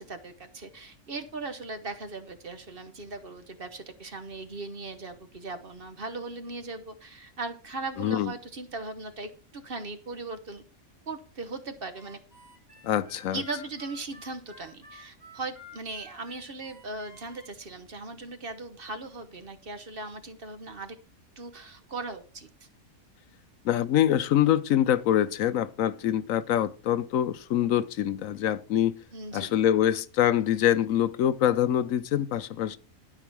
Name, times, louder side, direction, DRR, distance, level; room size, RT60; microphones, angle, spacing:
voice 1, 0.0-10.6 11.1-12.2 13.3-21.0 21.4-22.7 29.1-29.5, right 3 dB, 45° right, 1.1 m, -38 dB
voice 2, 8.0-8.3 12.8-13.4 23.6-29.0 29.3-32.8, left 11 dB, 70° left, 1.0 m, -25 dB
Harmonica, 11.9-17.5, left 1 dB, 25° left, 4.5 m, -51 dB
12.5 x 4.8 x 6.1 m
omnidirectional pair, 1.5 m